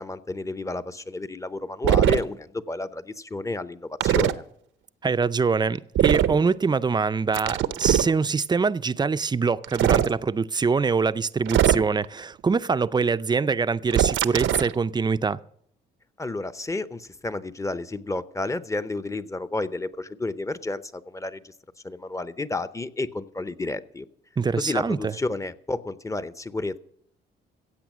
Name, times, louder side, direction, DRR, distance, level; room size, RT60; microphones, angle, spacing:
voice 1, 0.0-4.4 16.2-21.5 21.8-24.0 24.6-26.8, left 2 dB, 15° left, 0.7 m, -31 dB
sound 1, 1.8-2.2 4.0-4.3 5.9-6.4 7.3-8.1 9.6-10.1 11.5-12.0 13.9-14.7, right 11 dB, 75° right, 0.7 m, -21 dB
voice 2, 5.0-15.4 24.4-25.1, right 5 dB, 20° right, 0.5 m, -24 dB
15.5 x 8.1 x 6.2 m
cardioid pair, 90°, 20 cm